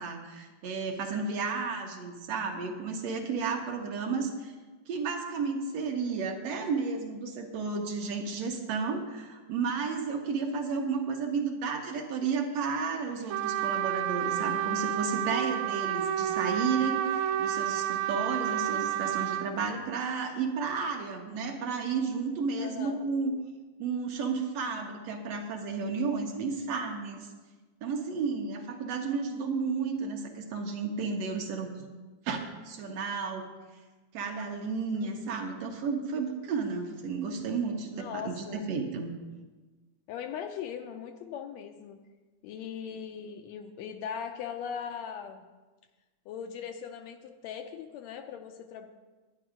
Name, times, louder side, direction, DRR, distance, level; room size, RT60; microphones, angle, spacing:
voice 1, 0.0-4.5 4.9-23.3 23.8-27.3 27.8-31.9 32.3-32.4 32.7-33.5 34.1-39.1, right 5 dB, 65° right, 2 dB, 2.0 m, -32 dB
voice 2, 4.1-4.4 22.6-23.0 34.9-35.3 37.9-38.6 40.1-42.0 42.4-45.6 46.3-48.9, left 8 dB, 80° left, 6 dB, 1.8 m, -40 dB
Trumpet, 13.3-19.5, right 10 dB, 85° right, 2.1 m, -30 dB
11.0 x 10.0 x 5.0 m, 1.3 s
omnidirectional pair, 3.4 m